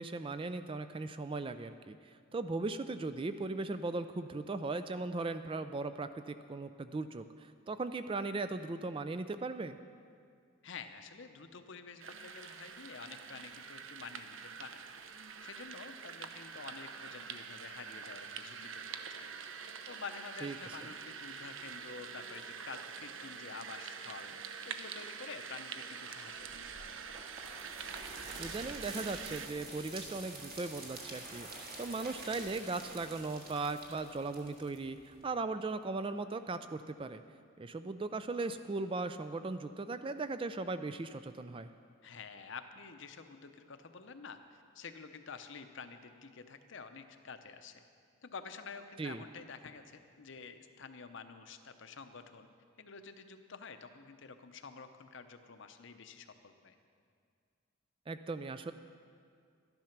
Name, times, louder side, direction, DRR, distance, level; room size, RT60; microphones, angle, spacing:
voice 1, 0.0-9.8 20.4-20.6 28.4-31.5 31.8-37.2 37.6-41.7 49.0-49.2 58.1-58.7, right 3 dB, 25° right, 11 dB, 0.3 m, -38 dB
voice 2, 10.6-15.0 15.4-19.3 19.8-26.5 26.8-27.0 42.0-47.8 48.2-52.5 52.8-56.7, left 5 dB, 60° left, 9 dB, 0.7 m, -49 dB
sound 1, 12.0-29.5, right 6 dB, 60° right, 0.6 m, -46 dB
sound 2, 26.4-35.2, right 3 dB, 45° right, 1.8 m, -48 dB
12.5 x 10.5 x 5.9 m, 2.3 s
head